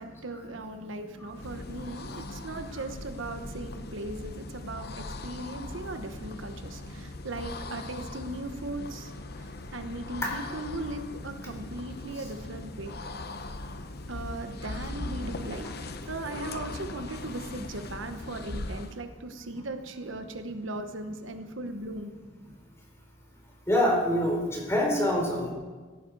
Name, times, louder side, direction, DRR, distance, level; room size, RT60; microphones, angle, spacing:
voice 1, 0.0-9.1 9.4-13.0 14.1-15.7 16.1-22.1, right 2 dB, 70° right, 7 dB, 1.1 m, -38 dB
sound 1, 1.2-19.0, left 2 dB, 50° left, 0.9 m, -40 dB
voice 2, 2.4-2.8 6.8-6.9 10.2-10.3 12.1-12.3 14.5-14.7 23.7-25.5, left 1 dB, 15° left, -1 dB, 3.9 m, -27 dB
17.0 x 14.0 x 4.8 m, 1.4 s
head